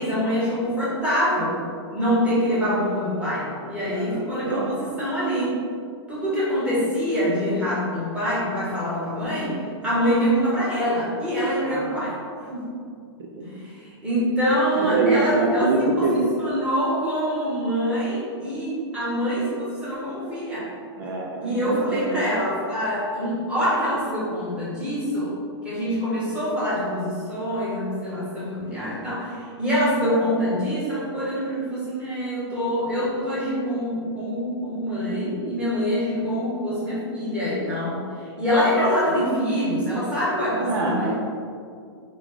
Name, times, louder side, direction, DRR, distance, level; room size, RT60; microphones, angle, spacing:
voice 1, 0.0-1.6 1.9-5.6 6.1-12.6 13.4-15.7 16.0-20.7 21.4-25.3 25.6-38.0 38.4-41.1, equal, 5° right, -9 dB, 1.2 m, -25 dB
voice 2, 3.8-4.7 11.6-12.0 13.2-13.5 14.8-16.3 21.0-22.3 40.6-41.2, right 3 dB, 55° right, 0 dB, 0.5 m, -25 dB
3.6 x 3.5 x 3.8 m, 2.2 s
hypercardioid pair, 155°, 15 cm